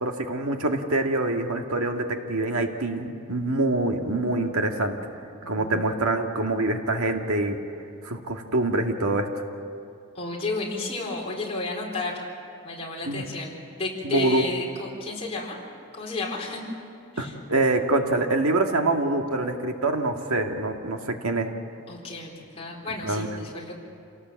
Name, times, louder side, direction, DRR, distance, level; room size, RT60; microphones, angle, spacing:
voice 1, 0.0-5.0 5.5-7.6 8.0-9.4 13.1-13.3 14.0-14.4 17.2-21.5 23.0-23.3, right 2 dB, 70° right, 3 dB, 1.9 m, -25 dB
voice 2, 5.4-5.9 10.1-12.3 12.6-15.6 15.9-16.6 17.1-17.3 21.9-23.7, left 2 dB, 25° left, -3 dB, 4.1 m, -32 dB
27.5 x 18.0 x 7.6 m, 2.5 s
head